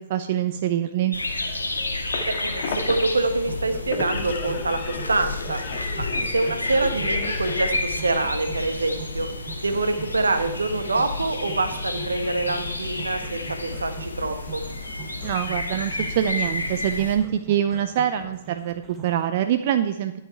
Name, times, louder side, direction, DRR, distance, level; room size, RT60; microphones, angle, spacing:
voice 1, 0.1-1.1 15.2-20.2, right 10 dB, 45° right, 9 dB, 0.5 m, -24 dB
sound 1, 1.1-17.2, left 2 dB, 80° left, 1.5 m, -31 dB
sound 2, 1.3-3.1 3.5-7.7, left 4 dB, 50° left, 1.7 m, -34 dB
voice 2, 2.3-5.6 6.1-9.3 9.6-14.6, right 2 dB, 75° right, 8 dB, 1.2 m, -25 dB
sound 3, 3.2-19.2, right 7 dB, 20° right, 1.4 m, -43 dB
12.0 x 8.0 x 4.7 m, 0.95 s
figure-of-eight pair, 110°, 0 cm